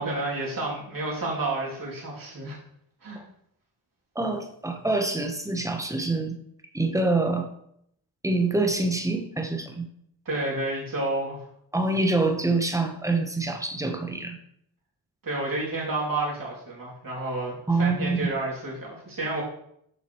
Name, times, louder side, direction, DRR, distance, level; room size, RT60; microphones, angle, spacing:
voice 1, 0.0-2.6 3.0-3.2 10.2-11.4 15.2-19.4, right 2 dB, 55° right, -4 dB, 2.9 m, -30 dB
voice 2, 4.1-6.4 6.7-7.5 8.2-9.9 11.7-14.4 17.7-18.3, right 2 dB, 10° right, 5 dB, 1.0 m, -26 dB
7.7 x 5.7 x 3.1 m, 0.72 s
cardioid pair, 55°, 41 cm